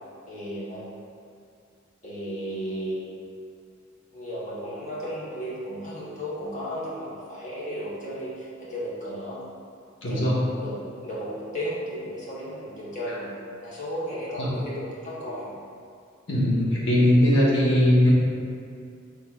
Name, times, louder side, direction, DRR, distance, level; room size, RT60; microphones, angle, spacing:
voice 1, 0.3-0.9 2.0-3.2 4.1-9.4 10.1-10.2 10.6-10.8 11.0-13.3 13.6-15.5, equal, 40° left, -8 dB, 1.2 m, -34 dB
voice 2, 10.0-10.4 14.4-14.5 16.3-18.1, left 1 dB, 65° left, -6 dB, 1.1 m, -20 dB
6.1 x 3.6 x 2.4 m, 2.3 s
head